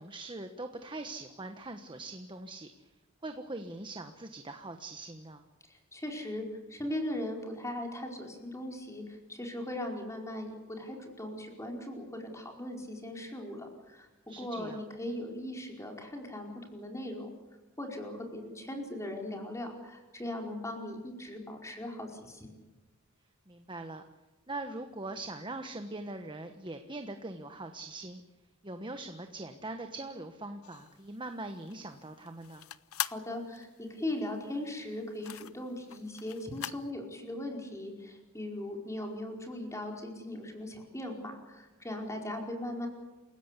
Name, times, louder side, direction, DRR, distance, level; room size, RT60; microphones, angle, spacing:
voice 1, 0.0-2.7 3.2-5.4 14.3-14.8 23.5-24.0 24.5-28.2 28.6-32.6, right 2 dB, 20° right, 6 dB, 1.2 m, -42 dB
voice 2, 5.7-14.1 14.4-17.3 17.8-22.6 33.0-42.9, left 1 dB, 15° left, 2 dB, 4.8 m, -39 dB
sound 1, 30.6-36.9, left 12 dB, 75° left, 0.7 m, -42 dB
28.5 x 16.5 x 8.4 m, 1.1 s
head